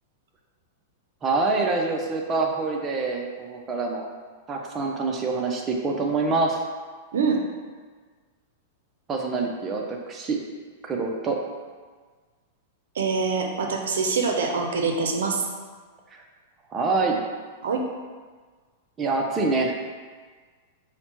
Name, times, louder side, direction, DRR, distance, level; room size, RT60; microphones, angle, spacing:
voice 1, 1.2-4.1 4.5-6.6 9.1-10.4 10.8-11.4 16.1-16.2 16.7-17.2 19.0-19.8, right 3 dB, 20° right, 1 dB, 0.5 m, -25 dB
voice 2, 13.0-15.4 17.6-17.8, right 4 dB, 85° right, 3 dB, 0.5 m, -24 dB
5.6 x 2.1 x 2.9 m, 1.5 s
hypercardioid pair, 135°, 0 cm